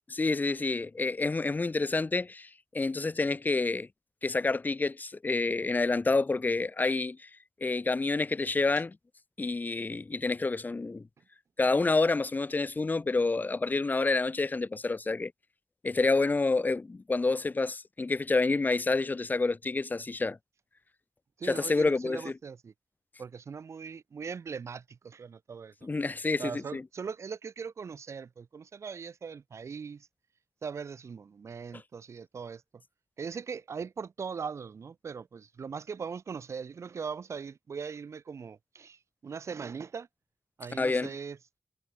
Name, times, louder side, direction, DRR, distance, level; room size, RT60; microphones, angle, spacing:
voice 1, 0.1-2.5 2.7-3.9 4.2-7.3 7.6-8.9 9.4-11.1 11.6-15.3 15.8-20.4 21.4-22.3 25.8-26.8 40.8-41.1, left 3 dB, 40° left, 0.4 m, -28 dB
voice 2, 21.4-22.7 23.2-25.7 26.4-30.1 30.6-32.8 33.2-40.1 40.6-41.4, right 6 dB, 80° right, 1.7 m, -40 dB
cardioid pair, 45°, 5 cm